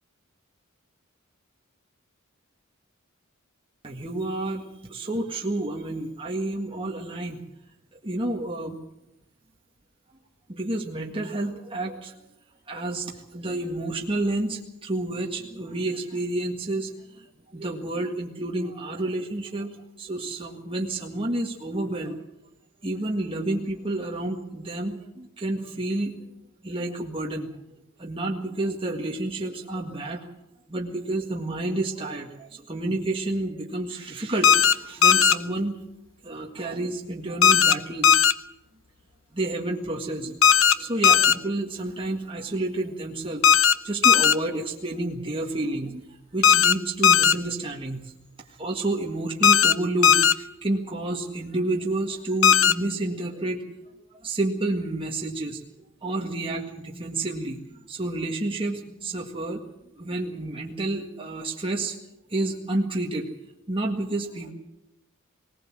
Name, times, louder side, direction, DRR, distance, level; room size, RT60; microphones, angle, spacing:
voice 1, 3.8-7.4 8.0-8.8 10.5-12.2 12.7-16.9 17.2-17.3 17.5-22.2 22.8-26.1 26.6-27.5 28.0-30.3 30.7-35.8 36.2-38.2 39.3-40.4 40.8-43.4 43.8-46.0 46.3-48.0 48.6-53.6 54.2-55.6 56.0-57.6 57.9-59.6 59.9-62.0 62.3-63.3 63.7-64.5, right 2 dB, 25° right, 0 dB, 1.8 m, -30 dB
sound 1, 34.4-34.7 35.0-35.3 37.4-37.7 38.0-38.3 40.4-40.7 41.0-41.3 43.4-43.7 44.0-44.3 46.4-46.7 47.0-47.3 49.4-49.7 50.0-50.3 52.4-52.7, left 7 dB, 70° left, 0.8 m, -16 dB
19.5 x 19.0 x 7.5 m, 0.86 s
head